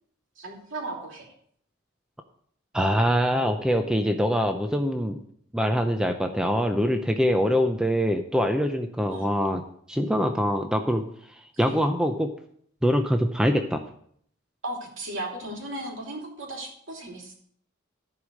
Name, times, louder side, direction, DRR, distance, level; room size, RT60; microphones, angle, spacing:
voice 1, 0.4-1.3 9.1-9.3 11.6-11.8 14.6-17.3, right 1 dB, 65° right, 0 dB, 3.1 m, -36 dB
voice 2, 2.7-5.2 5.5-9.6 9.9-11.0 11.6-12.3 12.8-13.8, equal, 5° right, 5 dB, 0.6 m, -24 dB
14.0 x 4.9 x 6.3 m, 0.64 s
head